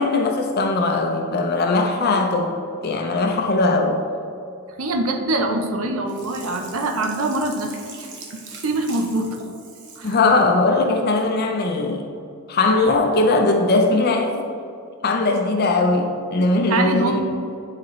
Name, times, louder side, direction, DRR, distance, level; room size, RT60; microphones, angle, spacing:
voice 1, 0.0-2.5 2.8-4.0 10.0-12.1 12.5-14.5 15.0-17.2, left 2 dB, 50° left, 3 dB, 0.5 m, -19 dB
voice 2, 4.8-9.4 10.0-10.2 16.7-17.2, right 2 dB, 80° right, 4 dB, 0.7 m, -24 dB
Sink (filling or washing), 6.1-10.3 10.7-10.8, right 4 dB, 60° right, 1.0 m, -41 dB
10.5 x 4.2 x 3.1 m, 2.4 s
head